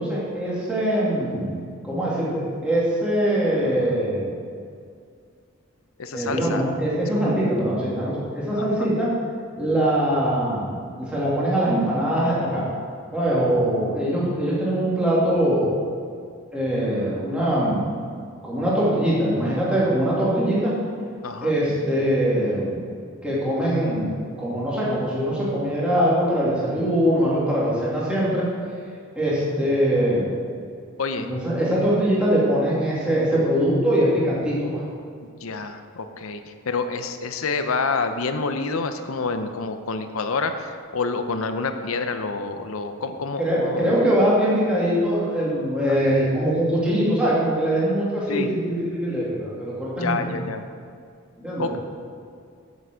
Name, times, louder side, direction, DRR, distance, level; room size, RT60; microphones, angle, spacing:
voice 1, 0.0-4.4 6.1-9.1 9.6-12.6 13.1-15.8 16.5-18.1 18.4-20.7 21.4-22.9 23.2-28.5 29.2-30.3 31.2-34.8 43.4-50.3 51.4-51.8, right 1 dB, 5° right, -7 dB, 2.7 m, -22 dB
voice 2, 6.0-6.6 7.2-7.3 8.6-8.7 21.2-21.6 31.0-31.3 35.2-44.0 45.9-46.3 48.3-48.5 50.0-50.6 51.6-51.8, left 4 dB, 85° left, 8 dB, 0.7 m, -28 dB
8.0 x 7.5 x 7.5 m, 2.2 s
head